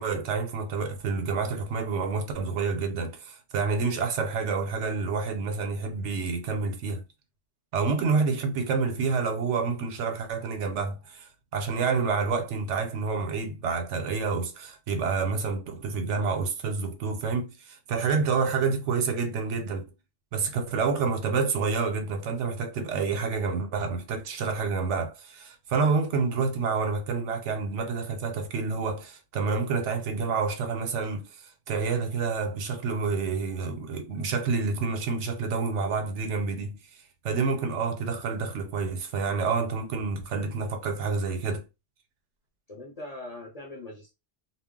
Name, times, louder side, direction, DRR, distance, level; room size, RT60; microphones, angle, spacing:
voice 1, 0.0-7.0 7.7-19.8 20.3-36.8 37.2-41.6, right 4 dB, 75° right, 0.9 m, -28 dB
voice 2, 42.7-44.1, left 2 dB, 40° left, 0.6 m, -41 dB
2.3 x 2.0 x 3.5 m
omnidirectional pair, 1.3 m